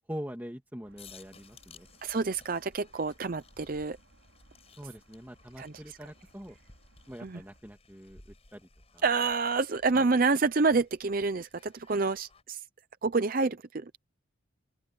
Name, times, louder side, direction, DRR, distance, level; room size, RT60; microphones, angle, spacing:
voice 1, 0.1-1.9 4.8-6.6 7.1-8.6 8.9-9.0 9.9-10.1, equal, 10° right, 2.0 m, -43 dB
sound 1, 0.8-7.6, right 1 dB, 75° right, 5.6 m, -62 dB
sound 2, 1.0-12.4, left 4 dB, 30° left, 6.4 m, -58 dB
voice 2, 2.0-4.0 5.6-5.7 7.2-7.4 9.0-12.6 13.0-13.9, right 4 dB, 40° right, 0.6 m, -28 dB
open air
head